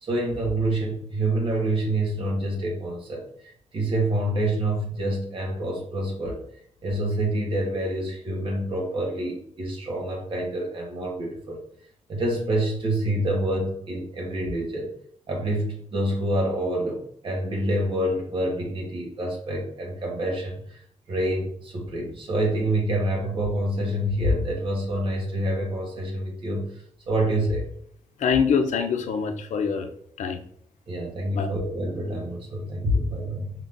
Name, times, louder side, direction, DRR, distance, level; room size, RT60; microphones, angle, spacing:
voice 1, 0.0-6.4 6.8-11.6 12.1-14.9 15.3-20.8 21.1-27.7 30.9-33.5, right 1 dB, 45° right, -1 dB, 1.3 m, -27 dB
voice 2, 28.2-29.9 30.2-30.4 31.3-31.5, left 6 dB, 80° left, 6 dB, 0.6 m, -24 dB
5.1 x 3.7 x 2.6 m, 0.66 s
wide cardioid pair, 170°, 12 cm